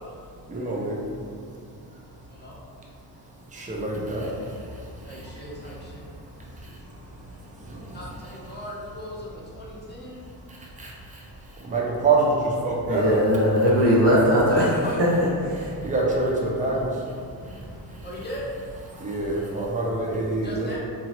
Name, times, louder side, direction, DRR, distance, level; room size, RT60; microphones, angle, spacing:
voice 1, 0.5-1.0 3.7-4.3 11.7-12.3 12.6-13.2 15.8-16.8 19.0-20.8, right 3 dB, 20° right, -3 dB, 0.4 m, -25 dB
voice 2, 2.3-2.6 5.0-6.1 7.9-10.2 14.5-15.1 18.0-18.5 20.4-20.8, equal, 25° left, -5 dB, 0.6 m, -38 dB
voice 3, 12.9-14.7 15.0-15.7 17.4-17.5, equal, 90° right, -6 dB, 1.0 m, -20 dB
2.9 x 2.4 x 2.9 m, 2.3 s
wide cardioid pair, 130°, 40 cm